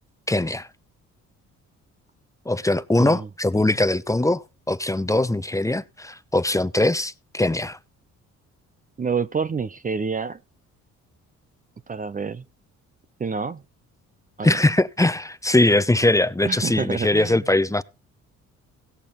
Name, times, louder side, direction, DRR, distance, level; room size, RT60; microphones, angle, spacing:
voice 1, 0.3-0.7 2.5-7.8 14.4-17.8, left 2 dB, 10° left, 0.8 m, -21 dB
voice 2, 9.0-10.4 11.9-12.4 13.2-13.6 14.4-14.6 16.4-17.4, right 5 dB, 25° right, 0.7 m, -28 dB
17.5 x 6.9 x 4.0 m
cardioid pair, 90°, 30 cm